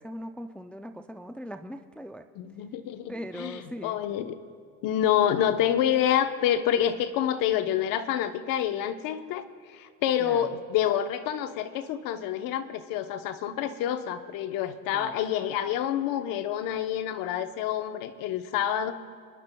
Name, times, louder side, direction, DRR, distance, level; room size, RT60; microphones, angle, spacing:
voice 1, 0.0-2.3 3.1-4.0 10.2-10.5 14.9-15.2, equal, 5° left, 6 dB, 0.3 m, -40 dB
voice 2, 2.4-4.4 4.8-18.9, left 10 dB, 60° left, 9 dB, 0.9 m, -28 dB
28.0 x 10.5 x 2.3 m, 2.2 s
supercardioid pair, 110°, 39 cm